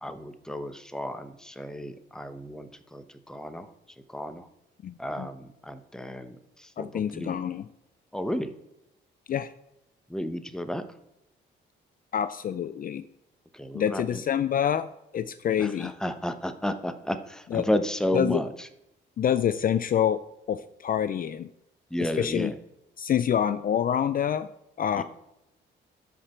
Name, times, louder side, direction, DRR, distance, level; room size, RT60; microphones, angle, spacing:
voice 1, 0.0-3.7 4.1-4.5 5.0-7.4 8.1-8.5 10.1-10.8 13.5-14.2 15.6-18.7 21.9-22.6 24.9-25.0, left 1 dB, 5° left, 9 dB, 0.9 m, -32 dB
voice 2, 4.8-5.3 6.8-7.6 9.3-9.5 12.1-13.0 13.7-14.9 15.1-15.9 17.5-17.7 18.1-18.4 19.2-20.2 20.5-21.5 22.2-22.5 23.0-24.5 24.8-25.0, left 9 dB, 45° left, 13 dB, 0.4 m, -26 dB
13.0 x 5.1 x 4.4 m, 0.84 s
cardioid pair, 90°, 20 cm